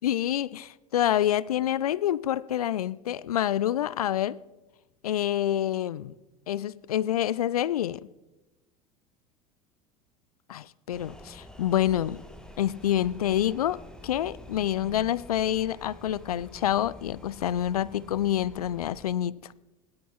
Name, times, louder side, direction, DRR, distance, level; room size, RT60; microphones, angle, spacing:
voice 1, 0.0-4.4 5.0-6.1 6.5-8.1 10.5-12.2 12.6-19.4, left 11 dB, 75° left, 0.4 m, -27 dB
sound 1, 10.9-19.1, equal, 5° left, 1.7 m, -48 dB
17.0 x 12.0 x 3.9 m
figure-of-eight pair, 75°, 19 cm